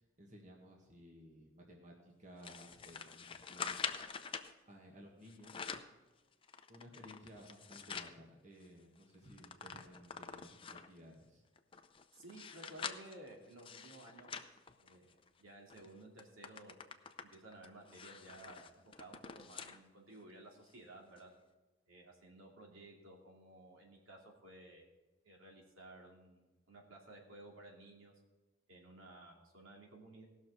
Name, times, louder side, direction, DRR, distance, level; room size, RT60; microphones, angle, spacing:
voice 1, 0.2-3.9 4.7-5.7 6.7-11.4, equal, 40° right, -1 dB, 1.7 m, -57 dB
sound 1, 2.4-4.5 5.2-6.0 6.4-8.2 8.6-8.7 9.0-11.0 11.6-15.3 15.7-15.9 16.2-19.8 20.2-20.3 21.2-21.3, left 6 dB, 25° left, 0.5 m, -46 dB
voice 2, 12.1-14.3 14.8-16.7 17.2-18.7 19.0-21.3 21.9-24.9 25.2-28.1 28.7-30.2, right 2 dB, 85° right, -1 dB, 2.6 m, -55 dB
17.5 x 6.4 x 4.7 m, 1.2 s
head